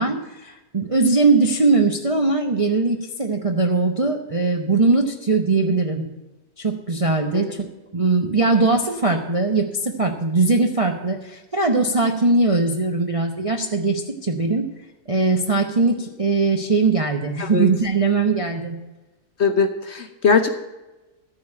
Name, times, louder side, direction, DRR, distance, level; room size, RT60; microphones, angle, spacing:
voice 1, 0.0-6.1 6.6-14.7 15.1-18.8, right 3 dB, 30° right, 2 dB, 0.6 m, -20 dB
voice 2, 19.4-20.5, left 5 dB, 55° left, 7 dB, 0.9 m, -20 dB
13.5 x 4.8 x 8.6 m, 1.1 s
omnidirectional pair, 1.7 m